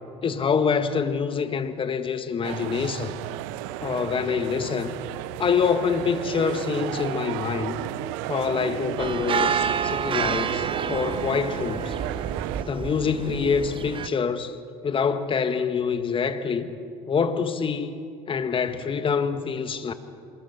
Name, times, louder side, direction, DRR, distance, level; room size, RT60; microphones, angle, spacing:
voice 1, 0.2-3.2 3.8-5.0 5.4-7.9 8.3-11.9 12.6-14.6 14.8-16.8 17.1-18.0 18.3-19.9, left 6 dB, 35° left, 1.7 m, -26 dB
sound 1, 2.4-12.6, right 15 dB, 75° right, 0.7 m, -33 dB
sound 2, 9.0-14.1, right 7 dB, 35° right, 0.8 m, -29 dB
26.0 x 20.5 x 5.8 m
hypercardioid pair, 80°, 16 cm